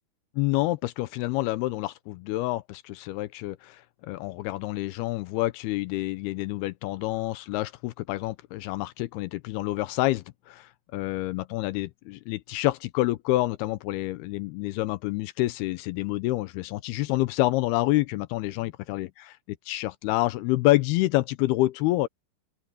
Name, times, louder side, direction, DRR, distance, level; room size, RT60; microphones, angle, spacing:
voice 1, 0.4-19.4 19.7-22.1, left 18 dB, 85° left, 2.3 m, -28 dB
open air
omnidirectional pair, 5.2 m